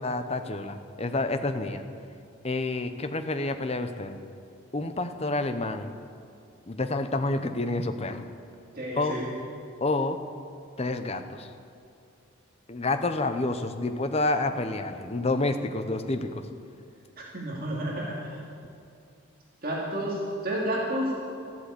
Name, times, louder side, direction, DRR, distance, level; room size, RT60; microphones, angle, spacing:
voice 1, 0.0-1.8 2.4-4.2 4.7-5.9 6.7-8.3 9.0-9.1 9.8-10.2 10.8-11.5 12.7-16.5, left 2 dB, 30° left, 8 dB, 0.8 m, -29 dB
voice 2, 8.7-9.3 17.3-18.4 19.6-21.1, right 1 dB, 45° right, -4 dB, 2.5 m, -30 dB
13.5 x 11.5 x 8.3 m, 2.5 s
head